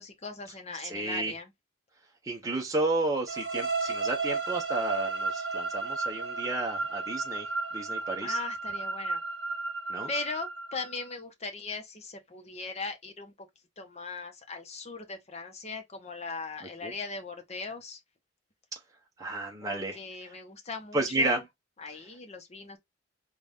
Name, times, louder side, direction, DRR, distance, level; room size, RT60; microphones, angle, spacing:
voice 1, 0.0-1.5 2.5-2.6 8.2-9.2 10.1-13.5 13.8-18.0 19.6-21.4 21.8-22.8, left 4 dB, 35° left, 0.8 m, -39 dB
voice 2, 0.9-1.3 2.2-7.5 7.7-8.4 9.9-10.1 16.8-16.9 19.2-20.0 20.9-21.4, right 2 dB, 15° right, 0.8 m, -31 dB
sound 1, 3.3-11.1, right 3 dB, 55° right, 1.1 m, -33 dB
4.0 x 2.3 x 3.4 m
head